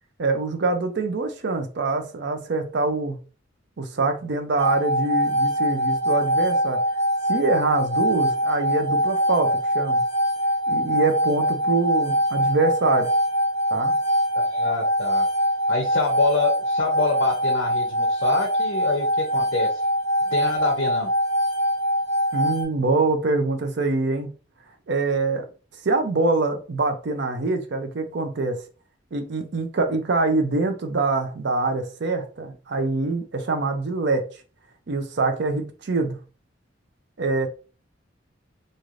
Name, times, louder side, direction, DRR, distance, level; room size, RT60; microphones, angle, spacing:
voice 1, 0.2-3.2 3.8-6.8 7.3-10.0 10.7-13.1 13.7-13.9 22.3-24.3 24.9-25.4 25.8-28.6 29.1-34.3 34.9-36.2 37.2-37.5, right 3 dB, 60° right, 0.5 m, -24 dB
sound 1, 4.6-22.6, equal, 35° left, 1.0 m, -23 dB
voice 2, 14.4-15.2 15.7-19.7 20.3-21.1, left 3 dB, 75° left, 0.6 m, -26 dB
3.1 x 2.6 x 2.5 m
head